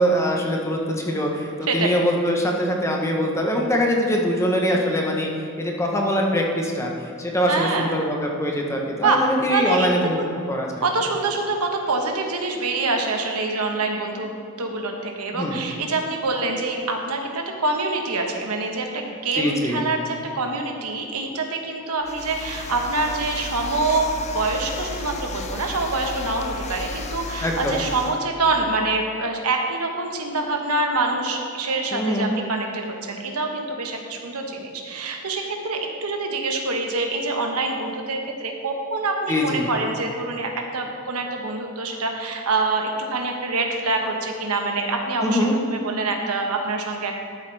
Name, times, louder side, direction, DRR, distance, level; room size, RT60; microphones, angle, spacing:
voice 1, 0.0-10.8 15.3-15.6 19.3-19.8 27.4-27.7 31.9-32.3 39.3-39.7 45.2-45.6, equal, 15° left, 0 dB, 1.0 m, -23 dB
voice 2, 1.7-2.0 7.5-7.9 9.0-9.2 9.5-10.3 10.8-47.2, right 3 dB, 80° right, 3 dB, 1.2 m, -25 dB
sound 1, 22.0-28.2, left 4 dB, 30° left, 0.6 m, -34 dB
12.5 x 7.9 x 3.4 m, 2.4 s
head